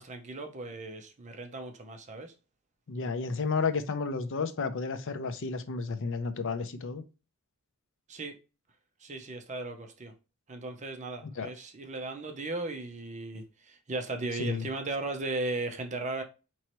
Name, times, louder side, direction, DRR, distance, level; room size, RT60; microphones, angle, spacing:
voice 1, 0.0-2.3 8.1-8.4 9.0-10.1 10.5-16.2, right 2 dB, 30° right, 0.6 m, -36 dB
voice 2, 2.9-7.0 11.4-11.5 14.4-14.6, left 4 dB, 60° left, 0.6 m, -32 dB
4.4 x 3.1 x 2.9 m
head